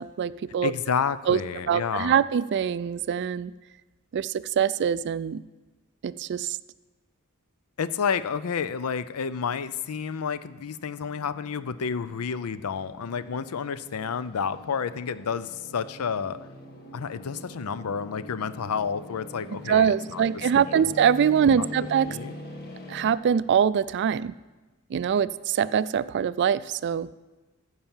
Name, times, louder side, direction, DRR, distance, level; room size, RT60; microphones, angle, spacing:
voice 1, 0.0-0.7 1.3-1.4 1.7-3.5 4.1-5.4 6.0-6.6 19.7-22.2 22.9-24.3 24.9-27.1, right 8 dB, 50° right, 17 dB, 0.3 m, -24 dB
voice 2, 0.6-2.2 7.8-16.4 16.9-20.2 20.5-20.6 21.5-21.7 22.0-22.3, left 6 dB, 75° left, 15 dB, 0.5 m, -30 dB
sound 1, 8.2-23.1, left 1 dB, 45° left, 1.4 m, -44 dB
14.5 x 5.6 x 7.2 m, 1.2 s
head